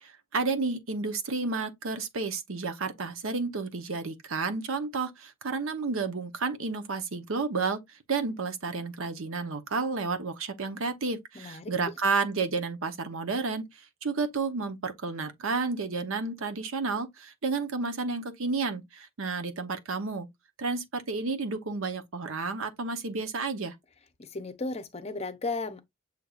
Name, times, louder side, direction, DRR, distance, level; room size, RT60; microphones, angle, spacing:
voice 1, 0.0-7.8 8.1-13.6 14.0-20.3 20.6-23.7, right 4 dB, 65° right, 0.8 m, -31 dB
voice 2, 11.3-11.9 24.2-25.8, left 3 dB, 30° left, 0.6 m, -35 dB
6.5 x 3.3 x 2.4 m
head